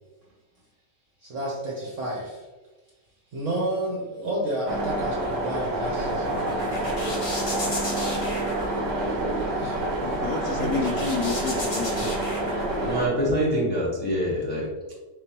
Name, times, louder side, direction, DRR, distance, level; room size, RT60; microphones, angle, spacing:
voice 1, 1.2-2.4 3.3-7.3 9.6-9.8 10.5-11.0, right 1 dB, 55° right, -4 dB, 1.1 m, -31 dB
sound 1, 4.7-13.1, right 2 dB, 90° right, 1.3 m, -28 dB
sound 2, 5.7-13.4, left 1 dB, 35° left, 1.0 m, -34 dB
voice 2, 10.0-12.0, left 5 dB, 70° left, 5 dB, 1.0 m, -30 dB
voice 3, 12.8-14.9, equal, 10° left, -6 dB, 0.8 m, -26 dB
4.4 x 3.6 x 2.9 m, 1.2 s
omnidirectional pair, 1.8 m